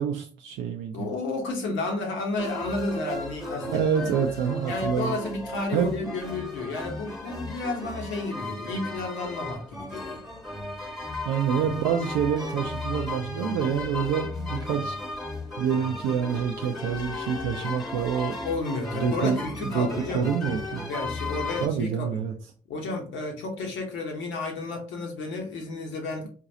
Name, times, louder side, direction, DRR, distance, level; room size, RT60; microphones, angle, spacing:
voice 1, 0.0-1.1 3.7-5.2 5.7-6.2 11.2-15.0 15.6-18.4 18.9-20.9 21.6-22.3, right 7 dB, 75° right, 0.4 m, -27 dB
voice 2, 0.9-3.8 4.7-10.3 18.4-20.3 20.9-22.2 22.7-26.3, left 2 dB, 70° left, 1.1 m, -32 dB
sound 1, 2.4-21.7, left 2 dB, ahead, 1.3 m, -35 dB
3.8 x 2.5 x 2.8 m
hypercardioid pair, 45°, 20 cm